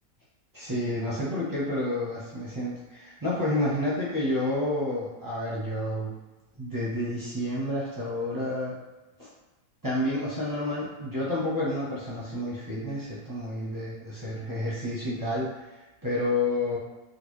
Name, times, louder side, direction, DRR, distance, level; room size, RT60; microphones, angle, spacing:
voice 1, 0.5-6.1 6.6-8.8 9.2-9.3 9.8-15.5 16.0-16.8, left 1 dB, 25° right, -8 dB, 0.5 m, -29 dB
3.7 x 2.3 x 3.1 m, 1.1 s
omnidirectional pair, 1.5 m